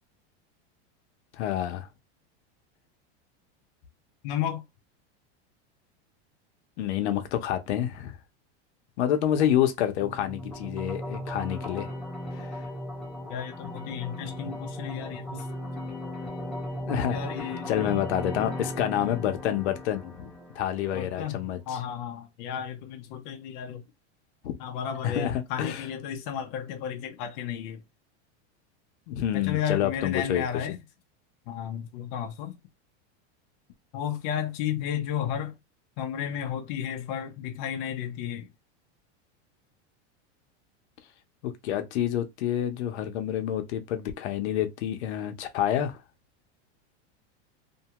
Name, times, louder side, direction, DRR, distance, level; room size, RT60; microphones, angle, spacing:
voice 1, 1.4-1.9 6.8-8.2 9.0-11.9 12.4-12.5 16.9-17.2 17.7-21.8 24.4-24.5 25.0-25.9 29.1-30.8 41.4-46.0, left 11 dB, 80° left, 0.8 m, -28 dB
voice 2, 4.2-4.6 13.3-15.5 17.1-17.7 18.5-18.7 20.9-23.8 24.6-27.8 29.3-30.8 31.5-32.6 33.9-35.6 36.0-38.5, left 9 dB, 45° left, 0.6 m, -33 dB
sound 1, 10.0-21.0, left 1 dB, ahead, 0.6 m, -37 dB
2.6 x 2.2 x 2.9 m
supercardioid pair, 160°, 34 cm